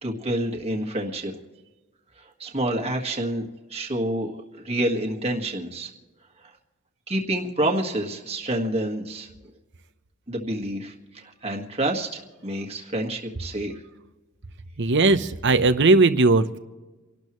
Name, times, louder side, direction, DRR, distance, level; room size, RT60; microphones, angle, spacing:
voice 1, 0.0-1.3 2.4-5.9 7.1-9.3 10.3-13.7, right 1 dB, 30° right, 1 dB, 1.7 m, -28 dB
voice 2, 14.8-16.6, right 3 dB, 55° right, 11 dB, 0.9 m, -18 dB
29.5 x 12.0 x 3.2 m, 1.2 s
head